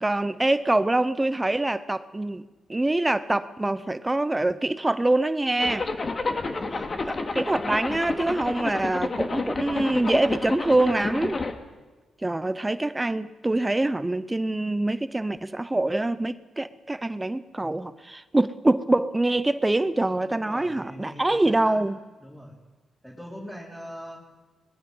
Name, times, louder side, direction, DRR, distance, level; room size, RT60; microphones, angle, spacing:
voice 1, 0.0-2.4 2.7-5.9 7.3-11.4 12.2-22.0, right 2 dB, 15° right, 0.8 m, -25 dB
Zipper (clothing), 5.6-11.5, left 3 dB, 40° left, 2.3 m, -30 dB
voice 2, 6.3-7.4 20.4-21.8 22.2-22.5 23.0-24.2, equal, ahead, 4.3 m, -42 dB
24.0 x 20.5 x 5.6 m
cardioid pair, 70°, 0 cm